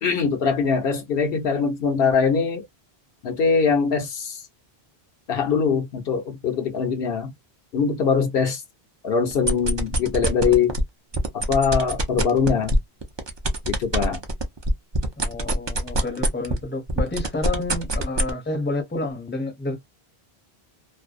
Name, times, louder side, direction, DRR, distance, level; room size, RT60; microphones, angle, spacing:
voice 1, 0.0-2.6 3.2-4.4 5.3-7.3 7.7-8.6 9.0-10.8 11.3-12.7 13.6-14.2, left 5 dB, 65° left, 0.8 m, -22 dB
sound 1, 9.3-10.8 11.1-16.6 16.9-18.3, right 1 dB, 40° right, 0.4 m, -24 dB
voice 2, 15.2-19.8, left 2 dB, 15° left, 0.5 m, -29 dB
2.6 x 2.1 x 2.3 m
omnidirectional pair, 1.1 m